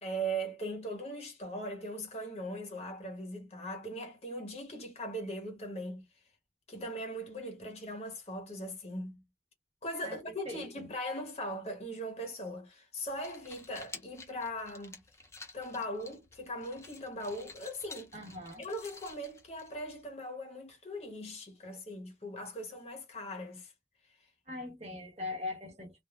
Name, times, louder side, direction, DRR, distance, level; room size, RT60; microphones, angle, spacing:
voice 1, 0.0-6.0 6.7-9.2 9.8-15.0 15.5-18.1 18.6-23.7, equal, 35° left, 0.9 m, -39 dB
voice 2, 10.0-10.9 18.1-18.7 21.6-21.8 24.5-25.9, left 2 dB, 40° right, 1.1 m, -41 dB
sound 1, 13.1-20.1, left 3 dB, 15° left, 0.5 m, -51 dB
3.4 x 2.1 x 2.3 m
head